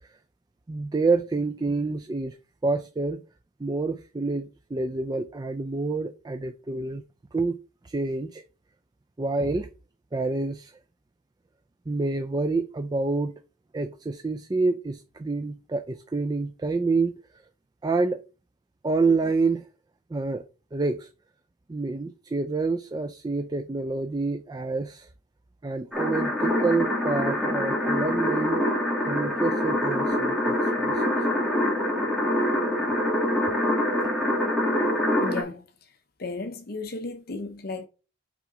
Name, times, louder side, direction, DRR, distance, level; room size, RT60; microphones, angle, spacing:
voice 1, 0.7-2.4 2.6-3.2 3.6-7.0 7.3-7.6 7.8-8.4 9.2-9.7 10.1-10.7 11.9-13.3 13.7-17.2 17.8-18.2 18.8-19.7 20.1-20.4 20.7-21.1 21.7-25.1 25.6-28.6 29.0-31.3, right 3 dB, 20° right, 0.4 m, -27 dB
sound 1, 25.9-35.4, left 1 dB, ahead, 1.9 m, -25 dB
voice 2, 35.2-35.7 36.2-37.9, left 3 dB, 50° left, 0.7 m, -34 dB
5.8 x 3.8 x 4.9 m
head